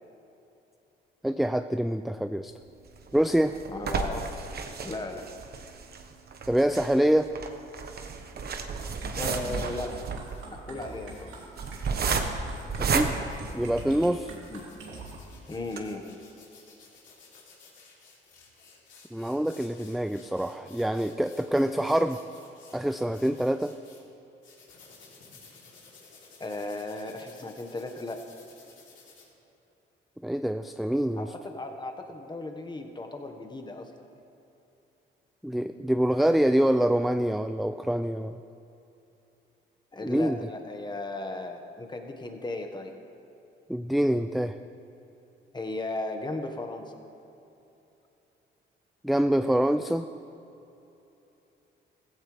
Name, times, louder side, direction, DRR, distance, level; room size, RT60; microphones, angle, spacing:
voice 1, 1.2-2.5 3.1-3.6 6.5-7.3 12.8-13.2 13.5-14.3 19.1-22.2 22.7-23.7 30.2-31.3 35.4-38.4 40.0-40.4 43.7-44.6 49.0-50.0, right 1 dB, ahead, 9 dB, 0.3 m, -25 dB
sound 1, 2.9-14.2 14.8-14.9 15.2-15.3 15.6-15.8, right 5 dB, 50° right, 1.2 m, -32 dB
voice 2, 3.7-4.2 4.8-5.2 9.1-9.9 10.5-11.4 14.5-14.7 15.5-16.0 26.4-28.2 31.2-33.9 39.9-42.9 45.5-47.0, left 2 dB, 20° left, 4 dB, 1.5 m, -36 dB
sound 2, 8.8-15.2, right 3 dB, 80° right, 2.9 m, -43 dB
sound 3, 10.2-10.4 10.8-24.0 24.4-29.2, left 4 dB, 70° left, 3.5 m, -55 dB
16.0 x 15.5 x 3.4 m, 2.9 s
cardioid pair, 90°, 20 cm